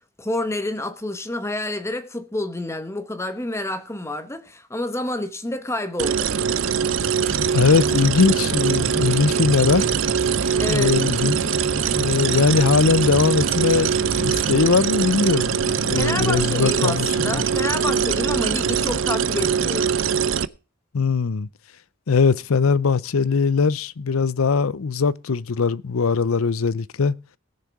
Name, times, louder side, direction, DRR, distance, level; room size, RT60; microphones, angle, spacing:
voice 1, 0.2-6.3 10.5-11.0 15.9-20.0, left 1 dB, 15° left, 1.0 m, -28 dB
sound 1, 6.0-20.5, right 7 dB, 65° right, 0.6 m, -22 dB
sound 2, 7.2-14.7, right 1 dB, 30° right, 1.2 m, -33 dB
voice 2, 7.5-9.8 10.7-11.4 12.0-17.4 20.9-21.5 22.1-27.1, left 5 dB, 80° left, 0.6 m, -20 dB
18.5 x 6.7 x 4.7 m
head